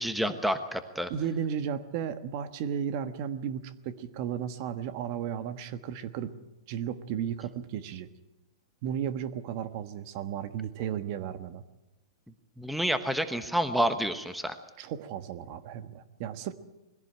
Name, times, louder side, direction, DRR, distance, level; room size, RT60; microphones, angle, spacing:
voice 1, 0.0-1.1 12.6-14.6, equal, ahead, 9 dB, 1.1 m, -29 dB
voice 2, 1.1-6.3 6.7-8.1 8.8-11.6 14.8-16.5, right 8 dB, 45° right, 11 dB, 1.4 m, -34 dB
21.5 x 16.0 x 9.1 m, 0.99 s
hypercardioid pair, 145°, 3 cm